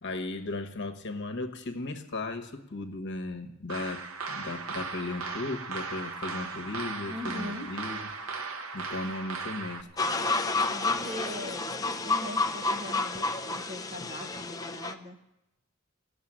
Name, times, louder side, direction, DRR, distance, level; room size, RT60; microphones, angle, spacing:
voice 1, 0.0-8.1 8.7-9.9, left 2 dB, 55° left, 5 dB, 1.2 m, -36 dB
sound 1, 3.7-9.8, right 4 dB, 70° right, 1.0 m, -37 dB
voice 2, 7.1-7.7 10.7-15.2, left 1 dB, 30° right, 3 dB, 1.4 m, -41 dB
sound 2, 10.0-14.9, left 3 dB, 15° left, 0.6 m, -30 dB
16.0 x 6.9 x 10.0 m, 0.89 s
head